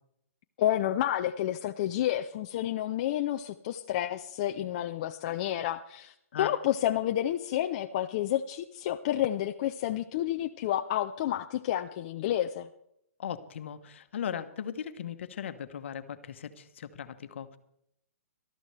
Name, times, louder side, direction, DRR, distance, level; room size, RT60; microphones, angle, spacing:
voice 1, 0.6-12.7, left 12 dB, 30° left, 6 dB, 0.4 m, -30 dB
voice 2, 13.2-17.6, left 8 dB, 50° left, 10 dB, 1.1 m, -38 dB
19.5 x 13.0 x 3.3 m, 0.75 s
hypercardioid pair, 165°, 8 cm